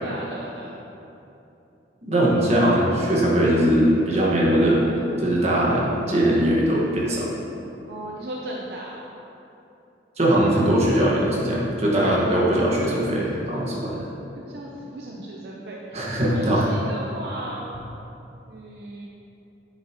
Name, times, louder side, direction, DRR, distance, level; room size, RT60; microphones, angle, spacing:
voice 1, 0.0-0.7 7.9-9.0 14.4-17.7 18.4-19.1, right 1 dB, 60° right, -3 dB, 0.8 m, -36 dB
voice 2, 2.0-7.3 10.2-14.0 15.9-16.6, right 1 dB, 35° right, -5 dB, 1.7 m, -20 dB
10.5 x 8.0 x 3.1 m, 2.9 s
head